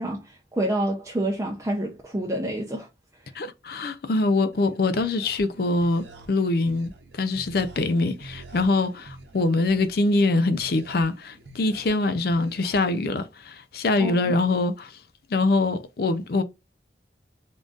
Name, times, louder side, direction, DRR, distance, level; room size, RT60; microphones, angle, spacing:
voice 1, 0.0-2.9 14.0-14.4, right 1 dB, 15° right, 0.5 m, -28 dB
voice 2, 3.4-6.9 7.2-14.9 15.3-16.4, left 2 dB, 55° left, 0.5 m, -24 dB
sound 1, 4.5-12.7, right 2 dB, 75° right, 0.8 m, -47 dB
3.8 x 3.7 x 2.4 m
head